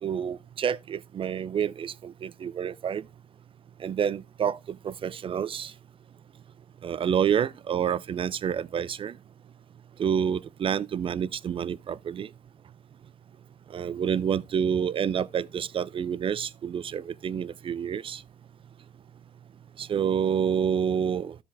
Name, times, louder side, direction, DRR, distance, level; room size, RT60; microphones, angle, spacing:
voice 1, 0.0-3.0 3.8-5.7 6.8-9.2 10.0-12.3 13.7-18.2 19.8-21.4, right 8 dB, 25° right, 0.4 m, -28 dB
15.0 x 5.1 x 2.5 m
figure-of-eight pair, 55°, 20 cm